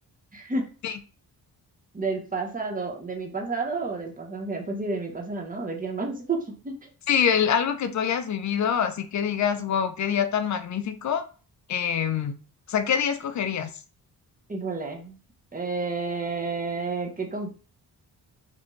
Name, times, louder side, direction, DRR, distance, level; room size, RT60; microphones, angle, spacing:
voice 1, 0.3-0.6 1.9-6.9 14.5-15.2 15.5-17.5, right 3 dB, 20° right, 1 dB, 0.8 m, -30 dB
voice 2, 7.1-11.3 11.7-12.3 12.7-13.7, left 8 dB, 45° left, 9 dB, 0.5 m, -25 dB
2.5 x 2.2 x 3.0 m, 0.37 s
supercardioid pair, 55°, 41 cm